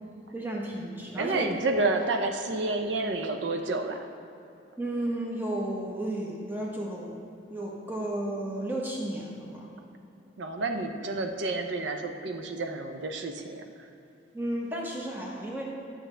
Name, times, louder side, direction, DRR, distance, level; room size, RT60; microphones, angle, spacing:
voice 1, 0.3-1.5 4.8-7.2 7.5-9.7 14.3-15.7, right 1 dB, 10° right, -2 dB, 0.9 m, -33 dB
voice 2, 1.2-4.0 10.4-13.6, right 3 dB, 80° right, 5 dB, 0.6 m, -29 dB
10.0 x 6.2 x 3.3 m, 2.8 s
head